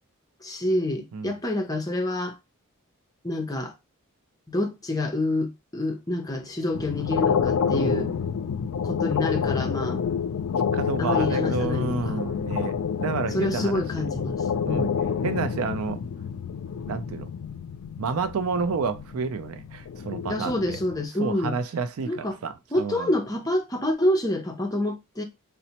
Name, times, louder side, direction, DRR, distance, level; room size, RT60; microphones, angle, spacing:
voice 1, 0.4-2.4 3.2-3.7 4.5-8.1 8.8-10.1 11.0-12.2 13.3-15.0 20.3-21.6 22.0-22.4 22.7-25.2, left 1 dB, 15° left, 0.6 m, -27 dB
sound 1, 6.7-21.1, left 7 dB, 70° left, 0.4 m, -28 dB
voice 2, 7.7-8.2 10.7-12.7 13.0-14.1 14.6-14.9 15.2-16.0 16.8-17.3 18.0-20.8 21.2-23.1, right 5 dB, 75° right, 0.4 m, -30 dB
4.1 x 2.1 x 2.8 m
head